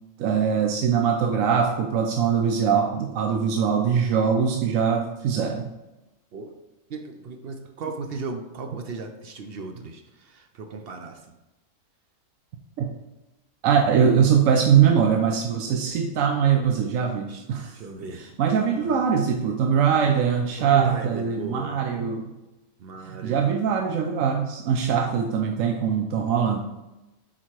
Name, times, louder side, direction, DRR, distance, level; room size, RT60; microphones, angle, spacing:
voice 1, 0.2-5.7 12.8-12.9 13.6-17.8 18.4-22.3 23.0-26.6, right 7 dB, 85° right, 3 dB, 1.0 m, -22 dB
voice 2, 6.9-11.3 17.3-17.5 17.7-19.0 20.6-21.8 22.8-23.4, right 3 dB, 60° right, 6 dB, 0.7 m, -36 dB
7.7 x 4.2 x 3.1 m, 1.0 s
omnidirectional pair, 1.4 m